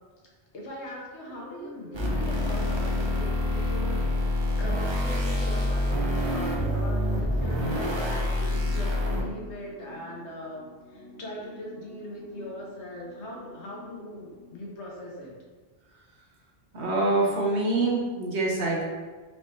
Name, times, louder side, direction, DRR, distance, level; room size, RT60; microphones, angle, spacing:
voice 1, 0.5-15.4, left 1 dB, 90° left, -2 dB, 1.3 m, -40 dB
sound 1, 1.3-15.0, right 1 dB, 65° right, 1.2 m, -48 dB
sound 2, 1.9-9.2, left 1 dB, 30° right, 0.6 m, -27 dB
voice 2, 16.7-18.8, right 2 dB, 85° right, -4 dB, 1.3 m, -25 dB
4.8 x 3.3 x 2.7 m, 1.4 s
omnidirectional pair, 1.1 m